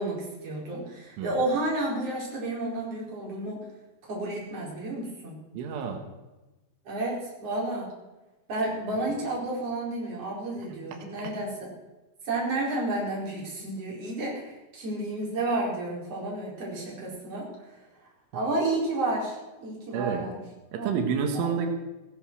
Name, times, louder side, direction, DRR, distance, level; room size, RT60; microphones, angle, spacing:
voice 1, 0.0-3.6 4.1-5.4 6.9-7.9 8.5-11.7 12.3-17.5 18.3-20.4 20.7-21.0 21.3-21.7, right 2 dB, 30° right, -4 dB, 5.5 m, -31 dB
voice 2, 5.5-6.0 19.9-20.3 20.7-21.7, right 6 dB, 90° right, 4 dB, 4.1 m, -29 dB
17.0 x 11.0 x 6.3 m, 1.1 s
omnidirectional pair, 5.4 m